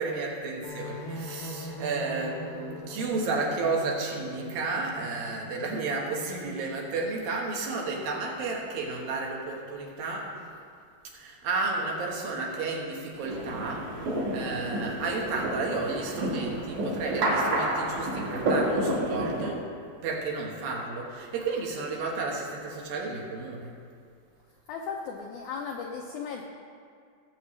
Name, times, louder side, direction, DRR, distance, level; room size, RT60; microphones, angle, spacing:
voice 1, 0.0-10.4 11.1-19.7 20.0-23.7, right 3 dB, 75° right, -1 dB, 3.2 m, -32 dB
sound 1, 0.6-6.1, left 1 dB, 65° left, 1.4 m, -41 dB
sound 2, 13.2-19.5, right 1 dB, 60° right, 3.2 m, -29 dB
voice 2, 24.7-26.4, left 5 dB, 85° left, 1 dB, 1.7 m, -36 dB
19.0 x 8.0 x 3.2 m, 2.3 s
omnidirectional pair, 4.3 m